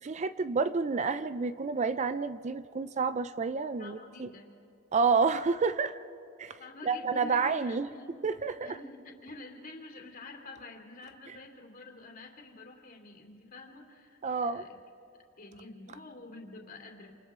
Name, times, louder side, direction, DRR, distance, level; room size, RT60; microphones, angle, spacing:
voice 1, 0.0-4.3 4.9-6.0 6.4-7.9 8.2-8.8 14.2-14.7, right 4 dB, 35° right, 13 dB, 0.4 m, -29 dB
voice 2, 3.8-4.6 6.6-8.2 8.5-14.8 15.4-17.1, left 2 dB, 45° left, 3 dB, 2.8 m, -48 dB
28.5 x 28.0 x 3.7 m, 2.7 s
head